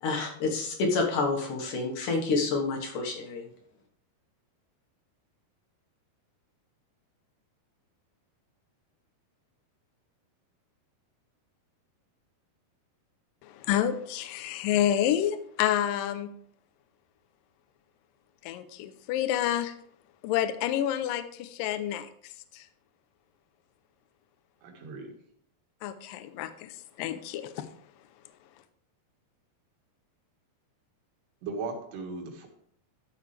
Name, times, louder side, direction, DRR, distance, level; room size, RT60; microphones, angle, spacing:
voice 1, 0.0-3.5, left 3 dB, 60° left, 1 dB, 2.6 m, -28 dB
voice 2, 13.4-16.3 18.4-19.7 20.2-22.7 25.8-27.7, left 11 dB, 85° left, 11 dB, 2.0 m, -29 dB
voice 3, 24.6-25.1 31.4-32.5, right 4 dB, 90° right, 1 dB, 3.8 m, -37 dB
13.0 x 6.9 x 3.3 m, 0.65 s
omnidirectional pair, 4.6 m